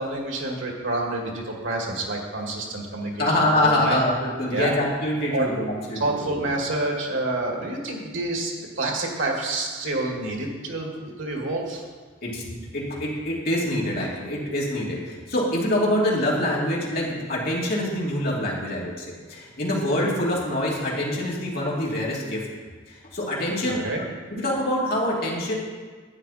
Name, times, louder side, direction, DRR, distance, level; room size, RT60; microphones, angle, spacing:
voice 1, 0.0-4.0 4.5-4.7 5.3-5.5 5.9-11.8 23.7-24.0, right 2 dB, 85° right, 0 dB, 2.1 m, -28 dB
voice 2, 3.2-6.4 12.2-22.4 22.9-23.8 24.3-25.5, left 1 dB, 50° left, -5 dB, 2.7 m, -25 dB
11.5 x 9.2 x 4.3 m, 1.5 s
head